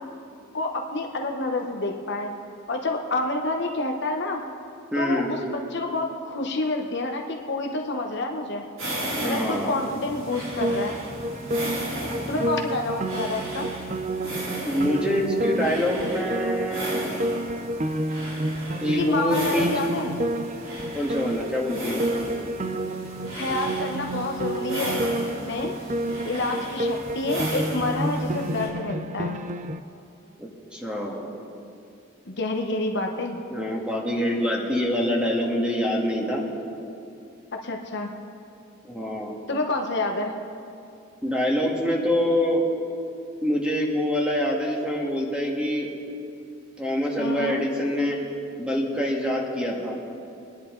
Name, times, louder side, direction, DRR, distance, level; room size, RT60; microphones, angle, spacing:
voice 1, 0.5-2.3 2.7-4.4 5.0-8.6 9.2-11.0 12.3-13.7 18.9-20.1 23.3-25.1 25.4-25.7 26.2-29.4 32.3-33.4 37.6-38.1 39.5-40.3 47.2-47.6, left 2 dB, 55° left, 2 dB, 1.0 m, -28 dB
voice 2, 4.9-5.3 9.2-9.8 14.7-17.1 18.8-19.7 20.9-22.1 30.4-31.3 33.5-36.4 38.8-39.3 41.2-42.6 43.4-45.9 46.8-48.2 48.6-49.9, equal, 5° right, -2 dB, 1.7 m, -25 dB
sound 1, 8.8-28.7, right 1 dB, 70° right, 3.8 m, -35 dB
Piano, 10.6-29.8, right 1 dB, 35° right, 0.5 m, -30 dB
23.0 x 10.5 x 3.9 m, 2.5 s
head